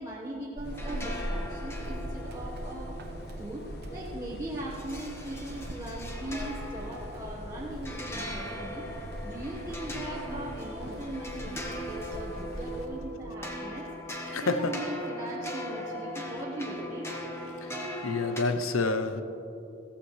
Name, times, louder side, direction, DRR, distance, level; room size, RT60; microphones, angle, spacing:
voice 1, 0.0-8.9 9.2-13.9 14.3-17.1, right 1 dB, 15° right, -7 dB, 1.4 m, -39 dB
sound 1, 0.6-12.9, left 1 dB, 50° left, 1.0 m, -49 dB
Walk footsteps / Squeak, 0.6-13.2, right 1 dB, 50° right, 0.8 m, -41 dB
sound 2, 0.7-18.4, equal, 15° left, 1.1 m, -40 dB
voice 2, 14.3-14.7 17.6-19.2, left 3 dB, 90° left, 9 dB, 0.7 m, -29 dB
16.0 x 14.5 x 3.3 m, 2.9 s
head